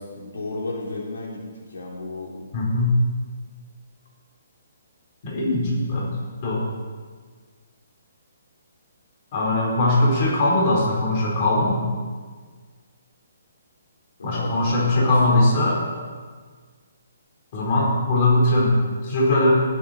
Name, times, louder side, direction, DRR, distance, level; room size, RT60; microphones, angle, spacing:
voice 1, 0.0-1.4 1.7-2.5 14.3-15.5, left 2 dB, 85° left, -2 dB, 3.2 m, -33 dB
voice 2, 2.5-2.9 5.2-6.1 6.4-6.6 9.3-11.8 14.2-15.8 17.5-18.7 19.0-19.5, left 2 dB, 35° left, -4 dB, 4.2 m, -20 dB
19.0 x 8.4 x 4.4 m, 1.5 s
hypercardioid pair, 165°, 0 cm